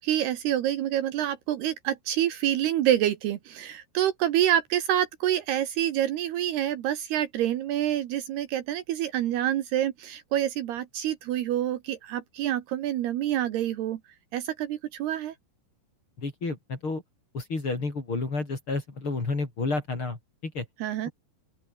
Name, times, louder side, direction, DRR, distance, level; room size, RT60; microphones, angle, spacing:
voice 1, 0.0-14.0 14.3-15.3 20.8-21.1, right 11 dB, 70° right, 3.1 m, -27 dB
voice 2, 16.2-17.0 17.3-20.7, left 3 dB, 30° left, 5.1 m, -31 dB
open air
omnidirectional pair, 5.2 m